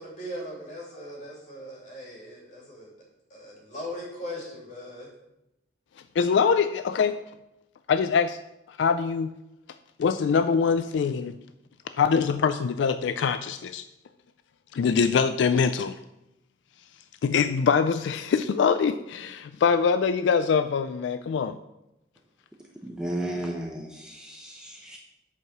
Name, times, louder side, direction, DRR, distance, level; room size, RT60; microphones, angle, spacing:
voice 1, 0.0-2.9 3.3-5.1, left 1 dB, 40° left, -4 dB, 2.8 m, -39 dB
voice 2, 6.2-7.1 7.9-8.4 8.7-9.3 10.0-11.3 12.0-13.9 14.7-16.0 17.2-21.6, left 6 dB, 75° left, 11 dB, 0.3 m, -23 dB
voice 3, 22.8-25.0, right 1 dB, 5° right, 0 dB, 0.7 m, -34 dB
8.1 x 4.7 x 5.9 m, 0.88 s
head